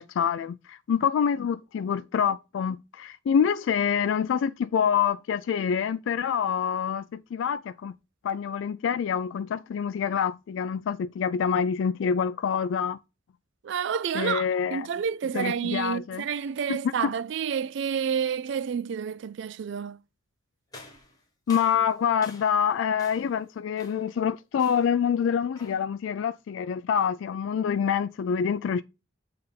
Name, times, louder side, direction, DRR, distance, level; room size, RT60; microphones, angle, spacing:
voice 1, 0.0-7.9 8.2-13.0 14.1-14.9 15.3-16.2 16.7-17.1 21.5-28.8, left 7 dB, 70° left, 0.3 m, -26 dB
voice 2, 13.6-20.0, right 7 dB, 65° right, 0.3 m, -29 dB
sound 1, 20.7-22.7 23.0-23.4 23.8-24.2 24.6-25.0 25.5-25.9, left 3 dB, 20° left, 1.5 m, -48 dB
6.7 x 3.4 x 5.4 m
head